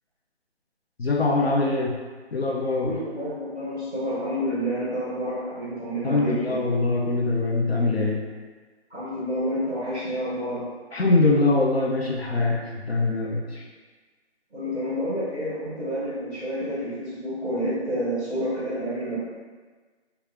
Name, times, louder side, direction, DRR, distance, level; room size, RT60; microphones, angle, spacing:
voice 1, 1.0-2.0 2.3-2.9 6.0-8.2 10.9-13.6, left 3 dB, 65° left, -1 dB, 0.6 m, -23 dB
voice 2, 2.8-6.6 8.9-10.6 14.5-19.2, equal, 5° left, -24 dB, 0.9 m, -29 dB
3.5 x 2.3 x 3.5 m, 1.4 s
figure-of-eight pair, 175°, 34 cm